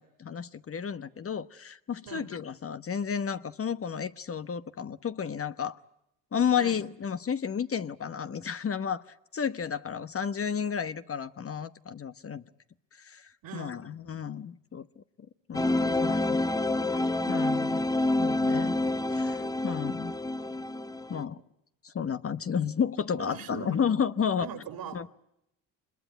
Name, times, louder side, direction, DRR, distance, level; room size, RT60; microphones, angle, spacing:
voice 1, 0.0-5.8 6.3-9.0 9.3-12.4 12.9-15.0 15.5-16.4 17.3-17.8 18.2-18.8 19.1-20.1 21.1-21.4 21.8-24.5 24.9-25.1, left 7 dB, 35° left, 1.1 m, -32 dB
voice 2, 13.4-13.9 23.2-23.8 24.4-25.2, right 7 dB, 65° right, 3.0 m, -41 dB
sound 1, 15.5-21.2, left 2 dB, 10° left, 1.1 m, -28 dB
25.0 x 21.5 x 9.2 m
supercardioid pair, 65°, 37 cm